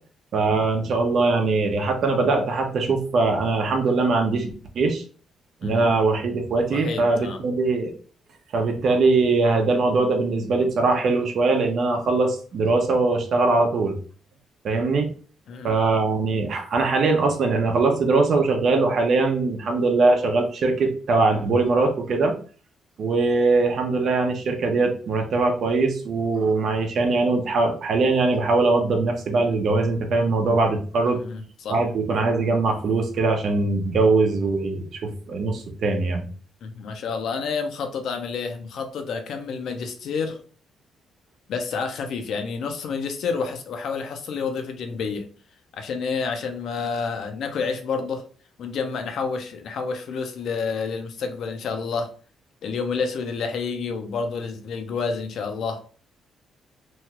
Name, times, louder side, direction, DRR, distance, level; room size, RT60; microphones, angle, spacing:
voice 1, 0.3-5.0 5.6-7.9 8.5-14.0 14.6-15.1 15.6-22.4 23.0-31.2 31.7-36.3, right 3 dB, 60° right, 4 dB, 0.7 m, -21 dB
voice 2, 6.7-7.4 15.5-15.7 31.2-31.8 36.6-40.4 41.5-45.3 45.7-48.2 48.6-52.1 52.6-55.8, left 5 dB, 70° left, 5 dB, 0.6 m, -29 dB
3.1 x 2.3 x 3.0 m, 0.41 s
cardioid pair, 90°, 0 cm